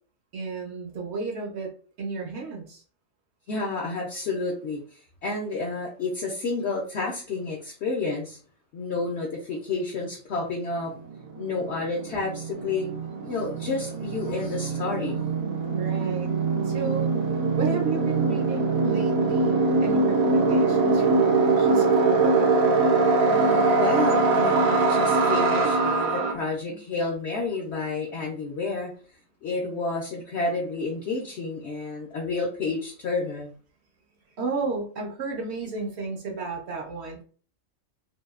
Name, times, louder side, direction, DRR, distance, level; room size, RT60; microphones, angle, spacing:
voice 1, 0.3-1.7 2.0-2.8 15.7-16.3 16.6-17.1 17.6-22.5 25.9-26.4 26.7-26.8 34.4-37.2, right 4 dB, 60° right, 1 dB, 0.8 m, -33 dB
voice 2, 3.5-8.4 8.7-10.9 11.4-12.9 13.2-15.3 23.3-28.9 29.4-33.5, left 3 dB, 65° left, -2 dB, 0.8 m, -30 dB
sound 1, 10.8-10.9 11.1-26.3, right 3 dB, 85° right, 1.0 m, -23 dB
2.7 x 2.3 x 2.3 m, 0.42 s
omnidirectional pair, 1.4 m